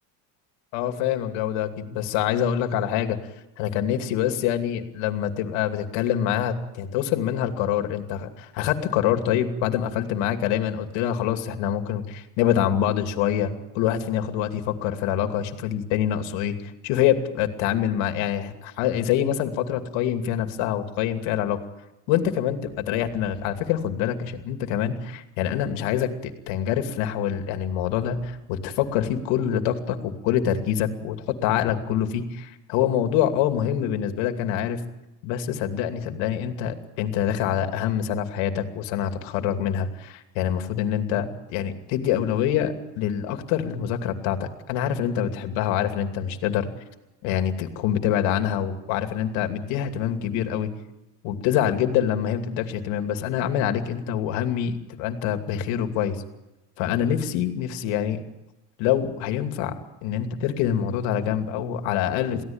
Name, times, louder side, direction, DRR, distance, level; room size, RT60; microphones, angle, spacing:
voice 1, 0.7-3.2 3.6-21.6 22.1-31.2 31.4-34.8 35.2-46.7 47.2-50.7 51.2-56.2 56.8-58.2 58.8-62.4, left 10 dB, 70° left, 7 dB, 2.7 m, -25 dB
23.0 x 16.0 x 8.9 m, 0.95 s
supercardioid pair, 120°, 46 cm